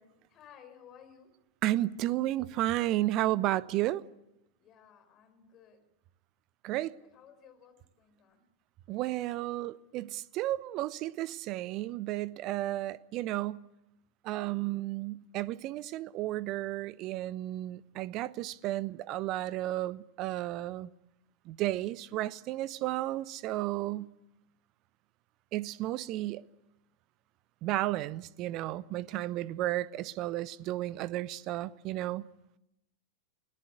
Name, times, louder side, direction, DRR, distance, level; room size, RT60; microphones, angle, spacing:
voice 1, 0.3-1.3 4.6-5.8 7.1-8.4 17.8-18.0, left 8 dB, 30° left, 5.4 m, -57 dB
voice 2, 1.6-4.0 6.6-6.9 8.9-13.6 14.2-20.9 21.4-24.1 25.5-26.4 27.6-32.3, right 15 dB, 40° right, 0.9 m, -33 dB
28.5 x 18.0 x 8.3 m
figure-of-eight pair, 90°, 0 cm